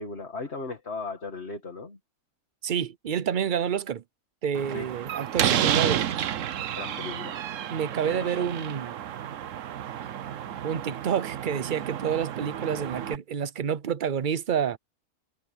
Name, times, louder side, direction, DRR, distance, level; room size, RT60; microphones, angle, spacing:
voice 1, 0.0-2.0 4.7-4.9 6.8-7.4 8.0-8.5, left 3 dB, 45° left, 2.2 m, -37 dB
voice 2, 2.6-4.0 4.4-6.1 7.7-9.0 10.6-14.8, right 8 dB, 45° right, 0.7 m, -28 dB
Slam, 4.6-13.2, right 10 dB, 65° right, 1.1 m, -31 dB
omnidirectional pair, 1.5 m